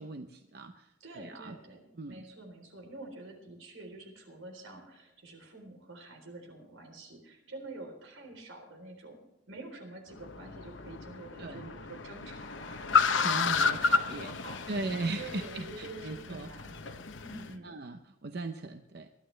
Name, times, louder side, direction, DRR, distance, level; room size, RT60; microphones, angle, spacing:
voice 1, 0.0-1.6 2.0-2.2 11.4-11.7 13.2-14.4 14.7-16.5 17.6-19.1, right 3 dB, 55° right, 7 dB, 0.7 m, -38 dB
voice 2, 1.0-14.6 14.9-17.7, right 2 dB, 80° right, 4 dB, 3.8 m, -47 dB
Car, 10.1-17.5, left 5 dB, 70° left, 0.9 m, -32 dB
22.0 x 11.5 x 3.3 m, 0.97 s
head